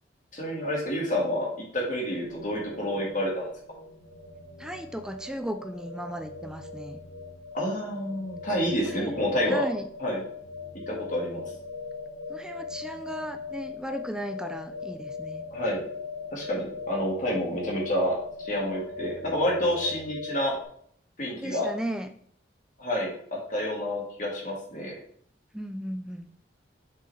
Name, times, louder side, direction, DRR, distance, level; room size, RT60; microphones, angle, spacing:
voice 1, 0.3-1.5 1.7-3.5 7.5-9.7 10.0-10.2 10.9-11.4 15.5-15.8 16.3-18.2 18.4-20.6 21.2-21.7 22.8-25.0, equal, 45° left, -2 dB, 1.9 m, -28 dB
sound 1, 2.2-20.6, left 4 dB, 75° left, 1.5 m, -40 dB
voice 2, 4.6-7.0 8.8-9.1 9.5-9.9 12.3-15.4 21.4-22.1 25.5-26.3, equal, 5° right, 7 dB, 0.4 m, -36 dB
6.6 x 5.4 x 3.3 m, 0.62 s
head